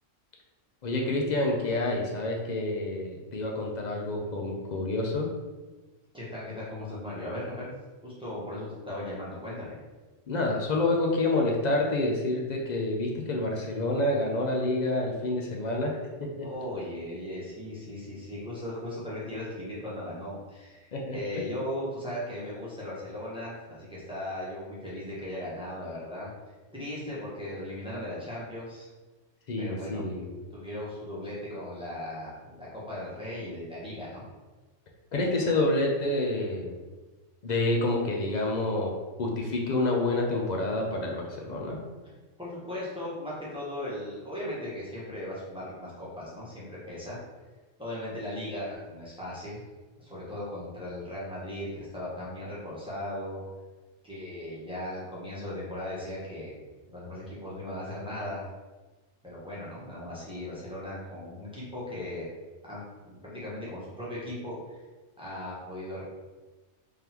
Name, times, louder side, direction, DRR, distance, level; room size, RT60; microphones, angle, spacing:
voice 1, 0.8-5.3 10.3-16.0 16.4-16.5 20.9-21.4 29.5-30.3 35.1-36.8 37.4-41.8, left 2 dB, 55° left, 0 dB, 0.5 m, -28 dB
voice 2, 6.1-7.7 8.0-9.8 16.4-26.3 26.7-28.9 29.6-30.0 30.5-34.2 42.4-47.2 47.8-49.6 50.0-53.4 54.0-56.6 56.9-58.4 59.2-62.3 62.6-64.8 65.2-66.0, left 1 dB, 5° right, -8 dB, 1.1 m, -37 dB
3.7 x 3.3 x 2.9 m, 1.2 s
omnidirectional pair, 1.3 m